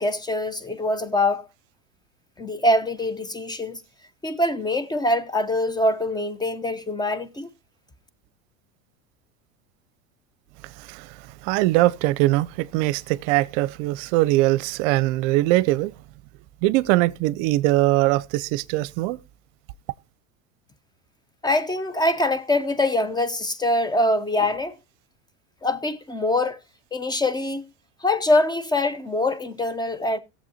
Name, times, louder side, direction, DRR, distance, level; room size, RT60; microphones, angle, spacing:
voice 1, 0.0-1.4 2.4-3.8 4.2-7.5 21.4-24.7 25.6-26.6 26.9-27.7 28.0-30.2, left 1 dB, 10° left, 0.8 m, -24 dB
voice 2, 11.4-15.9 16.6-19.2, right 18 dB, 60° right, 0.7 m, -21 dB
18.0 x 7.5 x 2.8 m
hypercardioid pair, 100°, 40 cm